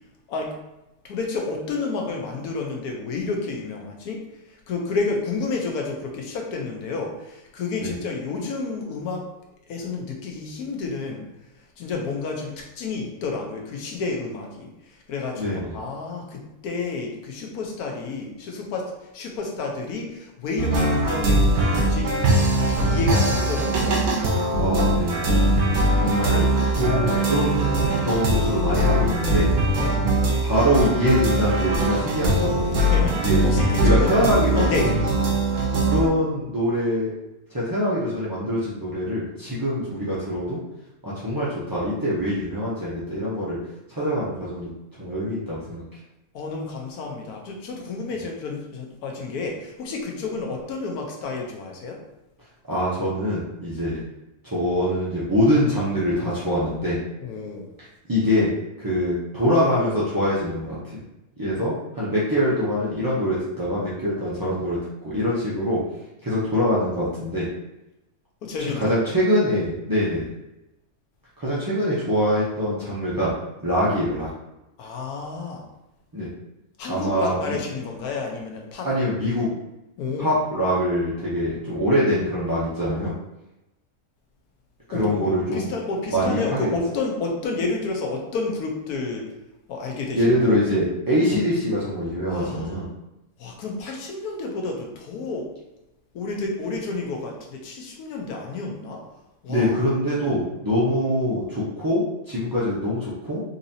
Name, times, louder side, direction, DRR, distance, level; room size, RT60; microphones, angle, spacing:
voice 1, 1.0-4.2 4.7-9.3 9.7-11.3 11.8-22.2 22.5-24.0 29.8-30.0 32.7-34.3 34.6-35.0 46.3-52.0 57.2-57.7 68.4-69.0 74.8-75.6 76.8-78.9 80.0-80.3 84.9-89.3 89.7-90.6 92.3-92.7 93.4-95.5 96.1-99.1 99.4-99.8, left 3 dB, 85° left, 1 dB, 1.2 m, -30 dB
voice 2, 15.4-15.8 24.6-25.3 25.9-26.5 26.7-29.5 30.4-32.8 33.1-33.4 33.8-34.7 35.8-37.1 37.5-40.6 41.0-43.6 43.9-44.7 45.0-45.8 52.7-54.0 54.4-57.0 58.1-58.5 58.8-60.8 61.4-65.8 66.2-67.5 68.7-70.3 71.4-73.3 73.6-74.3 76.1-76.3 76.9-77.3 78.8-79.5 80.2-83.1 84.9-85.7 86.1-86.8 90.1-92.9 99.5-103.4, equal, 30° right, -10 dB, 0.4 m, -24 dB
sound 1, 20.6-36.1, right 1 dB, 80° right, 1.3 m, -21 dB
3.9 x 2.8 x 2.6 m, 0.95 s
omnidirectional pair, 1.6 m